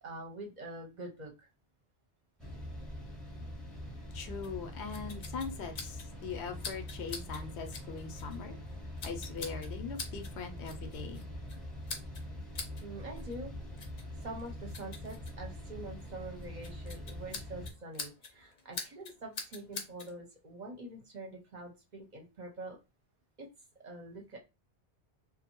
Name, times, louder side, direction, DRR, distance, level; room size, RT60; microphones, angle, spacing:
voice 1, 0.0-1.5 12.8-13.5 14.2-22.8 23.4-23.5 23.8-24.4, right 2 dB, 50° right, 1 dB, 0.7 m, -45 dB
sound 1, 2.4-17.7, left 1 dB, ahead, 0.7 m, -44 dB
voice 2, 4.1-8.6 9.0-11.3, left 5 dB, 85° left, 6 dB, 0.9 m, -41 dB
sound 2, 4.4-20.1, left 4 dB, 55° left, 0.6 m, -47 dB
2.5 x 2.2 x 2.9 m, 0.26 s
omnidirectional pair, 1.1 m